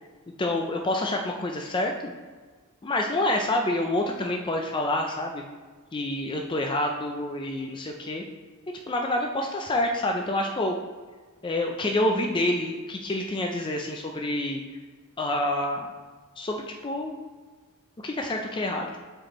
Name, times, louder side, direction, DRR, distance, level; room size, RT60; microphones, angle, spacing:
voice 1, 0.4-2.1 2.8-5.4 5.9-8.3 8.9-10.7 11.4-14.6 15.2-15.9 16.4-17.1 18.0-19.0, left 1 dB, 20° left, 1 dB, 0.4 m, -27 dB
7.5 x 4.3 x 3.0 m, 1.4 s
head